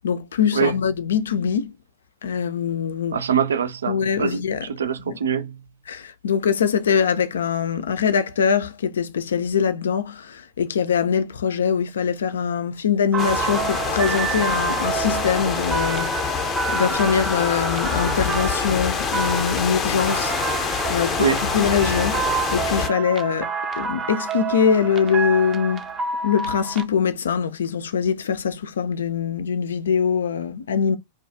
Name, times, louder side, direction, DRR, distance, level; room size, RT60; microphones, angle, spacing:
voice 1, 0.0-1.7 2.2-3.2 3.9-4.6 5.9-20.3 20.9-21.3 21.5-23.5 23.8-25.9 26.2-31.0, left 7 dB, 70° left, 0.3 m, -23 dB
voice 2, 3.1-5.6 21.2-21.5 22.8-23.1, right 7 dB, 75° right, 0.4 m, -24 dB
sound 1, 13.1-26.8, right 6 dB, 25° right, 0.5 m, -28 dB
sound 2, 13.2-22.9, left 6 dB, 30° left, 0.6 m, -26 dB
2.4 x 2.3 x 2.6 m
figure-of-eight pair, 95°, 0 cm